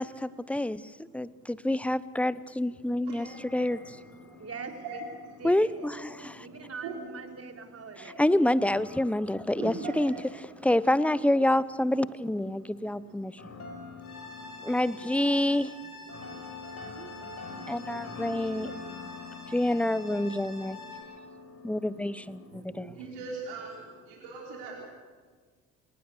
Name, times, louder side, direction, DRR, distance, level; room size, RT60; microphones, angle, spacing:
voice 1, 0.0-3.3 3.5-3.8 5.4-6.5 8.2-10.1 10.6-13.3 14.6-15.7 17.7-18.7 19.5-20.8 21.6-22.9, left 1 dB, 5° left, 19 dB, 0.8 m, -27 dB
voice 2, 1.2-1.5 2.9-5.0 5.8-7.0 8.0-8.4 9.6-10.2 12.7-15.1 16.1-19.5 20.7-24.8, right 4 dB, 65° right, -2 dB, 5.1 m, -45 dB
sound 1, 3.3-8.0 8.6-22.5, left 4 dB, 35° left, 5.4 m, -47 dB
voice 3, 4.4-5.0 5.4-5.9 6.4-8.2 15.8-15.9 16.2-19.1, right 4 dB, 35° right, 4 dB, 3.8 m, -45 dB
sound 2, 14.0-21.0, left 3 dB, 85° left, 6.0 m, -47 dB
28.0 x 19.0 x 6.9 m, 1.5 s
figure-of-eight pair, 55°, 43 cm